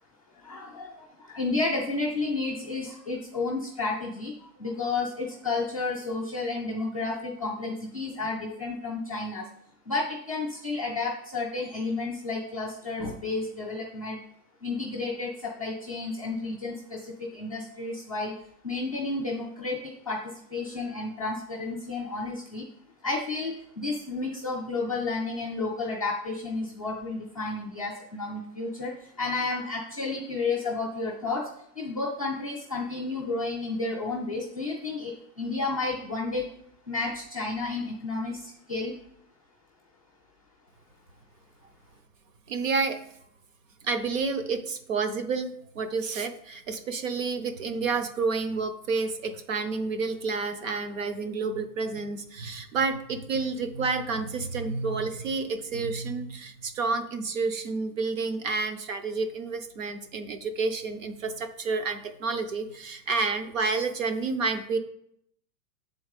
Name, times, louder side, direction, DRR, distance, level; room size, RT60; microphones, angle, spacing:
voice 1, 0.4-9.5 9.9-14.2 14.6-18.4 18.6-22.7 23.0-31.5 31.8-36.5 36.9-39.0, left 3 dB, 25° left, -5 dB, 0.4 m, -31 dB
voice 2, 42.5-43.0 43.8-64.8, right 4 dB, 50° right, 9 dB, 0.9 m, -30 dB
8.0 x 3.9 x 5.2 m, 0.72 s
supercardioid pair, 175°, 49 cm